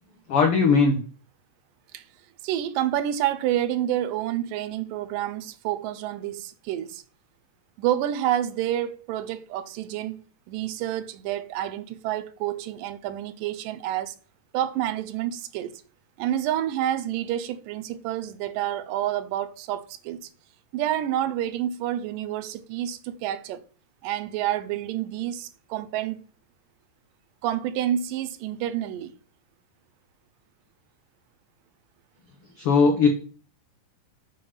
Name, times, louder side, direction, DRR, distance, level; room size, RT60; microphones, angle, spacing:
voice 1, 0.3-1.0 32.6-33.1, left 5 dB, 75° left, 1.3 m, -18 dB
voice 2, 2.4-7.0 7.8-14.2 14.5-15.8 16.2-20.3 20.7-23.6 24.0-26.2 27.4-29.1, right 12 dB, 85° right, 2.2 m, -28 dB
6.8 x 3.4 x 5.6 m
omnidirectional pair, 3.9 m